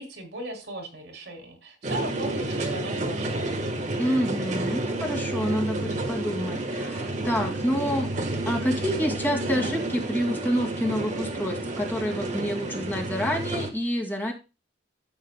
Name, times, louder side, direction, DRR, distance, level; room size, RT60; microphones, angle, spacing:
voice 1, 0.0-3.6, right 1 dB, 70° right, 3 dB, 3.0 m, -37 dB
sound 1, 1.8-13.7, right 2 dB, 40° right, 1.3 m, -30 dB
voice 2, 4.0-8.1 8.5-14.3, equal, 10° left, -1 dB, 2.3 m, -28 dB
14.0 x 7.5 x 2.2 m, 0.28 s
head